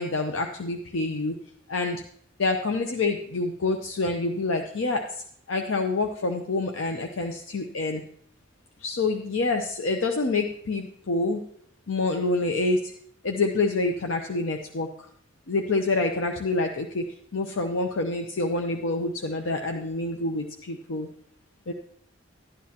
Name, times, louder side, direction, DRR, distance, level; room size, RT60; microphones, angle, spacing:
voice 1, 0.0-1.4 1.7-2.0 2.4-5.0 5.5-8.0 8.8-11.4 11.9-12.9 13.2-15.1 15.5-17.1 17.3-21.1 21.7-21.8, left 3 dB, 85° left, 4 dB, 0.7 m, -27 dB
12.0 x 9.5 x 2.9 m, 0.65 s
head